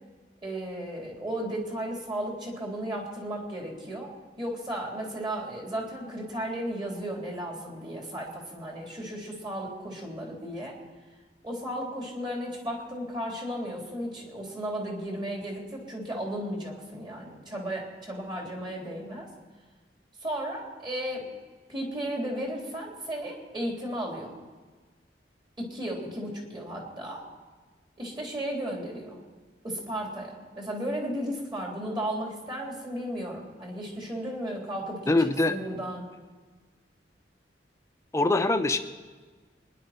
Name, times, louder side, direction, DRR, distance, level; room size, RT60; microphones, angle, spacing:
voice 1, 0.4-10.8 11.4-19.3 20.2-21.3 21.7-24.4 25.6-27.2 28.0-29.2 29.6-36.1, right 1 dB, 25° right, -1 dB, 3.6 m, -34 dB
voice 2, 35.1-35.5 38.1-38.8, left 2 dB, 15° left, 7 dB, 0.8 m, -23 dB
24.5 x 11.0 x 4.4 m, 1.4 s
head